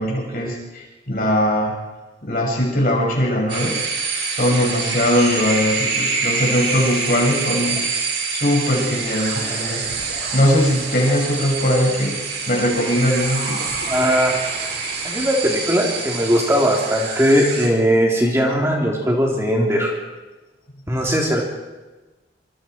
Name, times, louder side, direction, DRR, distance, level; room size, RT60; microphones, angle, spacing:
voice 1, 0.0-1.7 2.2-3.8 4.3-8.0 8.3-9.8 10.3-12.1 12.5-13.7, equal, 50° left, -1 dB, 6.7 m, -20 dB
sound 1, 3.5-17.7, right 4 dB, 70° right, 5.4 m, -26 dB
voice 2, 13.8-14.4 15.0-19.9 20.9-21.4, equal, 15° right, -1 dB, 3.6 m, -19 dB
26.5 x 26.0 x 4.7 m, 1.1 s
head